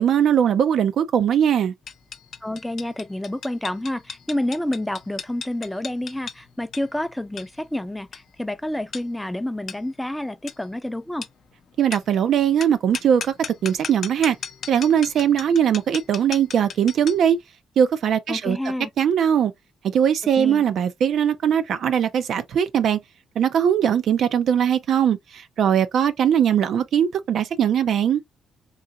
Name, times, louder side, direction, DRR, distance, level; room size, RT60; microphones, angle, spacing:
voice 1, 0.0-1.7 11.8-13.3 13.6-14.4 14.7-17.4 17.8-18.6 19.0-19.5 19.9-23.0 23.4-28.2, right 8 dB, 65° right, 0.5 m, -20 dB
sound 1, 1.9-17.3, left 7 dB, 55° left, 0.6 m, -38 dB
voice 2, 2.4-11.3 18.3-18.9 20.4-20.6, left 1 dB, 5° left, 0.5 m, -29 dB
3.9 x 2.8 x 2.3 m
cardioid pair, 90°, 0 cm